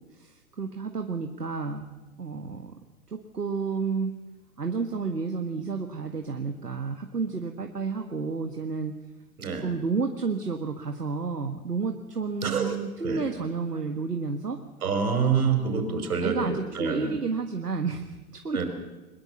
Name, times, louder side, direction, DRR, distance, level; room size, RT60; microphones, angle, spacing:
voice 1, 0.1-1.9 2.2-2.7 3.1-4.2 4.6-8.9 9.6-14.6 16.2-18.6, right 4 dB, 85° right, 5 dB, 1.7 m, -31 dB
voice 2, 12.4-13.3 14.8-17.2 18.5-18.7, right 5 dB, 70° right, 6 dB, 5.2 m, -27 dB
21.5 x 21.5 x 7.2 m, 1.2 s
figure-of-eight pair, 105°, 46 cm